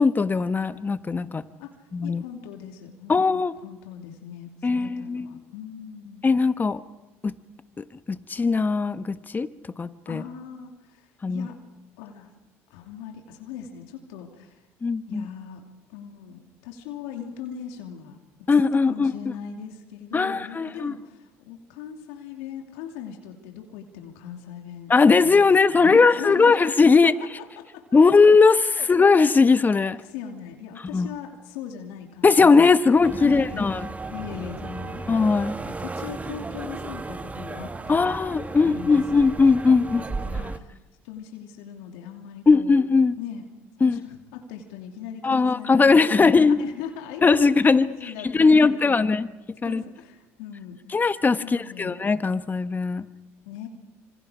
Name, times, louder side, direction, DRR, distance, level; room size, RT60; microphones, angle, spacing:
voice 1, 0.0-1.4 1.9-2.2 3.1-3.5 4.6-5.3 6.2-6.8 7.2-7.3 8.1-9.5 9.8-10.2 11.2-11.5 14.8-15.3 18.5-19.1 20.1-20.9 24.9-27.1 27.9-30.0 30.9-31.1 32.2-33.8 35.1-35.5 37.9-40.0 42.5-43.2 43.8-44.0 45.2-46.6 47.2-49.3 49.6-49.8 50.9-53.0, left 4 dB, 25° left, 12 dB, 1.2 m, -19 dB
voice 2, 1.6-6.3 10.1-11.6 12.0-12.3 12.7-14.6 15.1-15.6 15.9-24.9 25.2-27.9 28.7-28.9 30.0-33.7 34.1-35.1 35.6-39.5 39.8-39.9 40.2-40.7 41.0-42.7 43.2-43.4 43.8-46.3 46.6-49.2 49.7-50.8 51.4-51.9 53.5-53.7, left 8 dB, 75° left, 3 dB, 2.8 m, -39 dB
sound 1, 33.0-40.6, right 3 dB, 20° right, 1.4 m, -35 dB
27.0 x 26.5 x 5.1 m, 1.0 s
hypercardioid pair, 70°, 7 cm